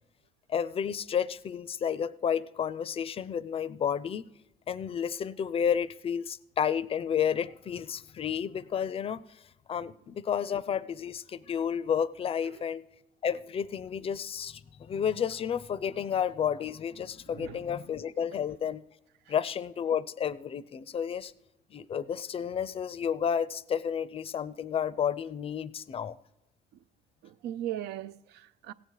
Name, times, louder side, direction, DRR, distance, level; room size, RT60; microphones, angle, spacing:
voice 1, 0.5-4.2 4.7-9.2 9.7-12.8 13.2-18.8 19.3-21.3 21.7-26.1, left 8 dB, 35° left, 0.4 m, -31 dB
voice 2, 17.3-17.6 19.3-19.4 27.2-28.7, right 12 dB, 80° right, 0.5 m, -38 dB
16.5 x 8.1 x 4.7 m
cardioid pair, 110°, 17 cm